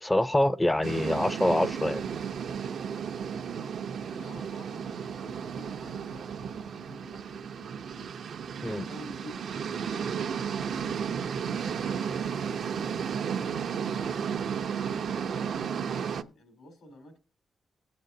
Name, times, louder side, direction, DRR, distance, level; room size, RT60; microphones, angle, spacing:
voice 1, 0.0-2.0 8.6-8.9, left 1 dB, 10° left, 0.4 m, -25 dB
sound 1, 0.8-16.2, right 7 dB, 75° right, 0.6 m, -33 dB
voice 2, 4.0-8.1 8.6-12.8 13.7-17.2, left 1 dB, 85° left, 3.3 m, -50 dB
18.5 x 7.8 x 2.7 m
cardioid pair, 110°, 0 cm